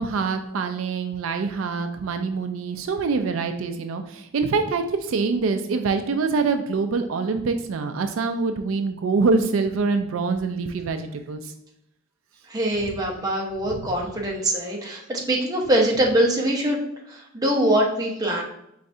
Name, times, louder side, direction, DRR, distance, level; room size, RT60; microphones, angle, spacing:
voice 1, 0.0-11.4 13.7-13.9, right 4 dB, 80° right, 7 dB, 0.4 m, -25 dB
voice 2, 12.5-16.8 17.1-18.4, right 1 dB, 20° right, -1 dB, 0.8 m, -23 dB
4.8 x 3.2 x 2.6 m, 0.77 s
head